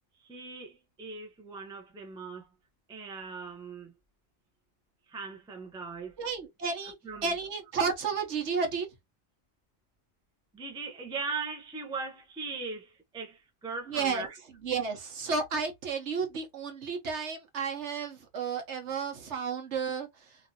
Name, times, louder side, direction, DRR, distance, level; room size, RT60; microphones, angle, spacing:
voice 1, 0.2-2.5 2.9-3.9 5.1-6.1 7.0-7.3 10.5-14.3, right 4 dB, 5° right, 0.5 m, -39 dB
voice 2, 6.2-6.9 7.2-8.9 13.9-14.3 14.6-20.1, right 5 dB, 60° right, 1.2 m, -32 dB
3.2 x 2.7 x 2.6 m
omnidirectional pair, 1.4 m